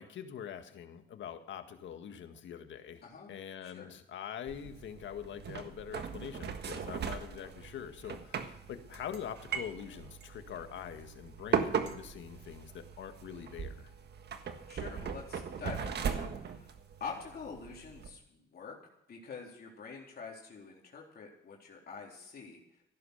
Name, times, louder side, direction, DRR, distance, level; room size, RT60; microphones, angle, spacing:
voice 1, 0.0-3.0 3.3-13.9, left 9 dB, 70° left, 7 dB, 1.8 m, -44 dB
sound 1, 4.5-18.1, right 7 dB, 60° right, 1.6 m, -39 dB
voice 2, 14.7-16.8 17.0-18.8 19.1-22.6, left 5 dB, 50° left, -2 dB, 3.7 m, -46 dB
15.0 x 11.5 x 6.6 m, 0.80 s
cardioid pair, 90°, 20 cm